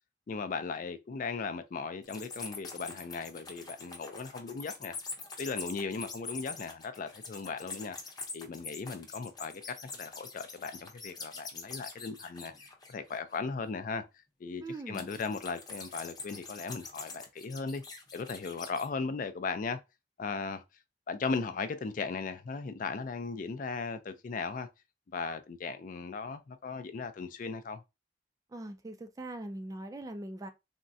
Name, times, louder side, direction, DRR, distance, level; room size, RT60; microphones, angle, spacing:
voice 1, 0.3-4.9 5.4-8.0 8.3-12.5 12.9-14.0 14.4-17.8 18.1-19.8 20.2-20.6 21.1-24.7 25.1-27.8, left 4 dB, 50° left, 0.4 m, -37 dB
sound 1, 2.0-13.4 14.9-18.9, left 4 dB, 25° left, 0.7 m, -44 dB
voice 2, 14.6-15.0 28.5-30.5, right 1 dB, 20° right, 0.4 m, -41 dB
3.5 x 2.1 x 2.6 m
head